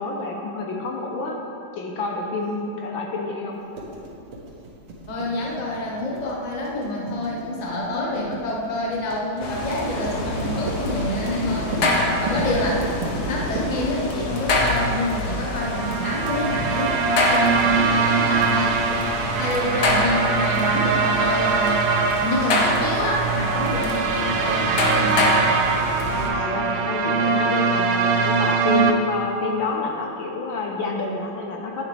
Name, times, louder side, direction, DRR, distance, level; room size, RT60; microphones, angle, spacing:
voice 1, 0.0-1.4 1.7-3.6 12.3-12.7 26.1-31.9, left 3 dB, 70° left, 0 dB, 1.6 m, -28 dB
sound 1, 3.7-15.3, right 2 dB, 90° right, 2.3 m, -32 dB
voice 2, 5.1-12.8 13.3-17.0 17.3-18.8 19.3-21.8 22.2-25.3, left 1 dB, 25° left, -3 dB, 1.0 m, -28 dB
sound 2, 9.4-26.3, left 2 dB, 55° left, 1.4 m, -26 dB
sound 3, 15.4-28.9, right 5 dB, 75° right, 1.5 m, -22 dB
10.5 x 9.2 x 3.4 m, 2.6 s
omnidirectional pair, 2.4 m